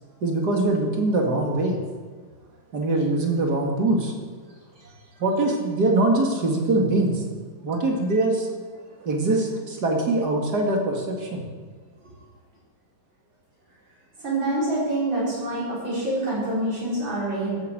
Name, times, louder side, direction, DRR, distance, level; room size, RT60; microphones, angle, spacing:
voice 1, 0.2-1.8 2.7-4.1 5.2-7.2 7.6-8.5 9.0-11.5, right 2 dB, 55° right, 1 dB, 2.7 m, -23 dB
voice 2, 14.2-17.6, right 1 dB, 70° right, -7 dB, 6.3 m, -26 dB
14.0 x 8.3 x 7.7 m, 1.5 s
omnidirectional pair, 2.2 m